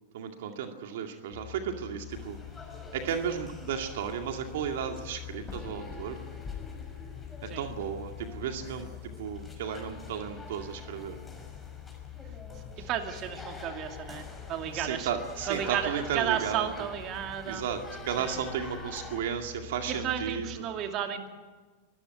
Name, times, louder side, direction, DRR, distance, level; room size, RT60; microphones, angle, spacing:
voice 1, 0.1-2.4 2.9-6.2 7.6-8.9 9.2-11.2 12.8-12.9 14.7-16.7 17.4-20.5, right 8 dB, 70° right, 4 dB, 2.2 m, -34 dB
sound 1, 1.3-20.6, left 16 dB, 60° left, 6.6 m, -47 dB
sound 2, 2.1-19.2, left 3 dB, 10° left, 5.7 m, -45 dB
voice 2, 12.9-15.1 15.5-17.6 18.2-18.5 19.8-21.3, right 9 dB, 45° right, 5 dB, 2.5 m, -33 dB
24.5 x 13.5 x 9.4 m, 1.3 s
hypercardioid pair, 105°, 0 cm